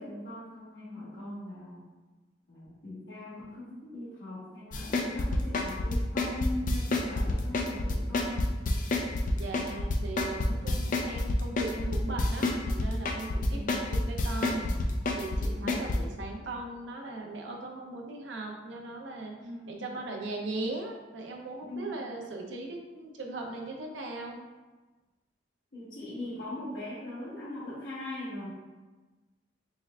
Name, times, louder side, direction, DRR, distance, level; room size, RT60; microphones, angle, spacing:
voice 1, 0.0-1.9 2.5-8.5 13.3-13.8 15.4-15.8 19.4-19.9 21.7-21.9 25.7-28.5, left 1 dB, 70° left, -9 dB, 1.3 m, -40 dB
sound 1, 4.7-16.0, left 2 dB, 45° left, 0.4 m, -28 dB
voice 2, 9.3-14.7 15.1-19.3 19.6-24.4, right 2 dB, 75° right, 1 dB, 0.6 m, -38 dB
4.4 x 3.2 x 2.3 m, 1.2 s
head